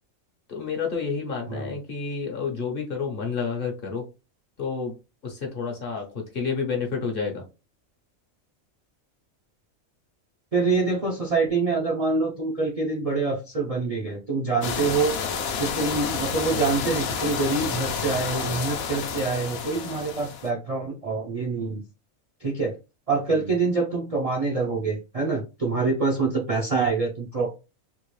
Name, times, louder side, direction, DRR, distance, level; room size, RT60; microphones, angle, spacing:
voice 1, 0.5-4.1 4.6-4.9 5.2-7.4 23.3-23.5, left 5 dB, 45° left, 1 dB, 0.9 m, -30 dB
voice 2, 10.5-15.1 15.6-21.8 22.4-22.7 23.1-27.5, right 4 dB, 45° right, 0 dB, 0.5 m, -25 dB
sound 1, 14.6-20.5, left 6 dB, 80° left, 1.1 m, -30 dB
3.6 x 2.4 x 3.1 m, 0.29 s
omnidirectional pair, 1.4 m